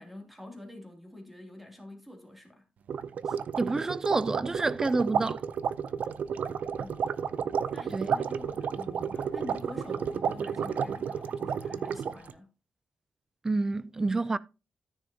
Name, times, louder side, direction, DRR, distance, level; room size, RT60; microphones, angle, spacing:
voice 1, 0.0-2.6 6.8-7.0 7.7-12.5, left 1 dB, 5° right, 2.7 m, -46 dB
sound 1, 2.9-12.3, right 7 dB, 70° right, 0.6 m, -32 dB
voice 2, 3.6-5.4 7.9-8.1 13.4-14.4, right 3 dB, 20° right, 0.4 m, -28 dB
sound 2, 4.1-12.3, left 3 dB, 70° left, 2.3 m, -53 dB
13.5 x 6.4 x 2.8 m
wide cardioid pair, 180°, 3 cm